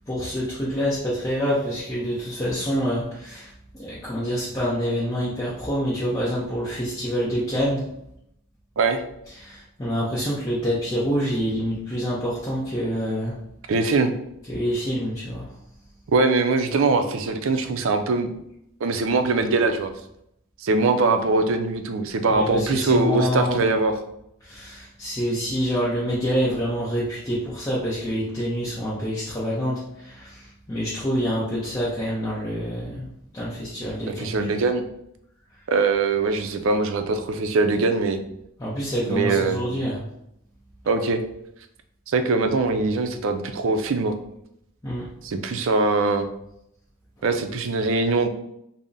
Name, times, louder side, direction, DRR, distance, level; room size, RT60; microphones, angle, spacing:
voice 1, 0.1-7.9 9.4-13.4 14.5-15.5 22.3-23.6 24.4-34.5 38.6-40.0 44.8-45.1, equal, 15° left, -8 dB, 0.6 m, -27 dB
voice 2, 13.7-14.1 16.1-18.3 18.8-19.9 20.6-24.0 34.1-34.8 35.7-38.2 39.1-39.6 40.9-41.2 42.1-44.1 45.2-46.3 47.2-48.3, right 3 dB, 65° right, 7 dB, 0.4 m, -22 dB
3.5 x 2.0 x 3.9 m, 0.77 s
head